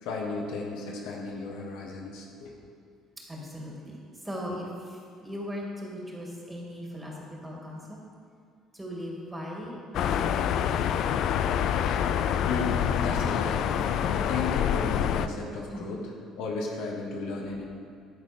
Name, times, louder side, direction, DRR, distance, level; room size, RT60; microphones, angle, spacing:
voice 1, 0.0-2.5 12.4-16.1 16.4-17.6, left 3 dB, 80° left, -1 dB, 1.3 m, -34 dB
voice 2, 3.3-4.0 4.2-7.1 7.4-8.0 8.7-10.9 15.7-15.9, equal, 15° right, -2 dB, 2.2 m, -38 dB
sound 1, 9.9-15.3, left 9 dB, 65° left, 0.3 m, -26 dB
11.0 x 4.2 x 5.2 m, 2.3 s
supercardioid pair, 85°, 0 cm